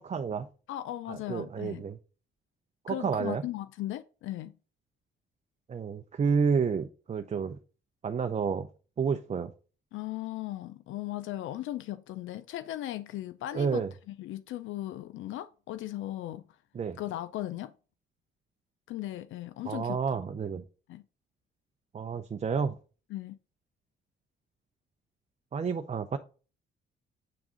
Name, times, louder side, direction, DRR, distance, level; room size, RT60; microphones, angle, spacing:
voice 1, 0.1-0.5 1.1-2.0 2.8-3.4 5.7-7.6 8.0-8.7 9.0-9.5 13.5-13.9 16.7-17.0 19.7-20.6 21.9-22.8 25.5-26.2, right 6 dB, 35° right, 0.6 m, -30 dB
voice 2, 0.7-1.8 2.9-4.5 9.9-16.4 17.0-17.7 18.9-20.0 20.9-21.0 23.1-23.4, left 14 dB, 80° left, 0.5 m, -37 dB
7.8 x 3.5 x 5.0 m
cardioid pair, 90°, 20 cm